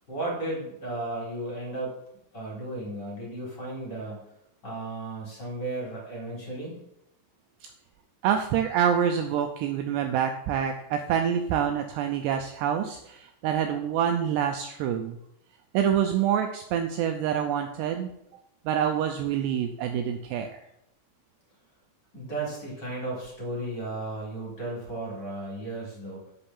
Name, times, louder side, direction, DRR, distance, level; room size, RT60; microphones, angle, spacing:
voice 1, 0.1-1.9 2.3-4.2 4.6-6.8 22.1-26.3, right 2 dB, 25° left, -3 dB, 4.0 m, -34 dB
voice 2, 8.2-15.2 15.7-18.1 18.7-20.6, right 9 dB, 80° right, 5 dB, 2.6 m, -26 dB
8.6 x 6.9 x 7.2 m, 0.80 s
omnidirectional pair, 5.4 m